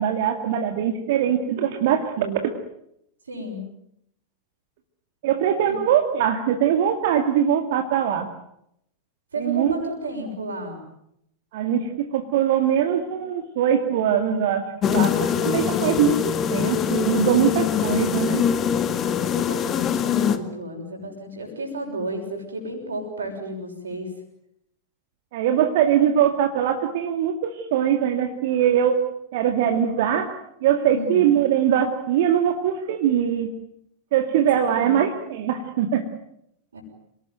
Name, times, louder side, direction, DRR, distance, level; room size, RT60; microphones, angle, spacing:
voice 1, 0.0-2.5 5.2-8.3 9.4-9.7 11.5-18.4 25.3-29.0 29.3-30.3 30.6-33.5 34.1-36.0, right 9 dB, 50° right, 5 dB, 2.2 m, -22 dB
voice 2, 3.3-3.6 5.7-5.8 9.3-10.8 15.2-15.9 19.0-24.1 30.9-31.2 34.7-35.0 36.7-36.8, right 1 dB, 70° right, 2 dB, 6.5 m, -33 dB
sound 1, 14.8-20.4, left 8 dB, 30° left, 2.0 m, -23 dB
28.0 x 19.0 x 9.3 m, 0.77 s
figure-of-eight pair, 90°, 0 cm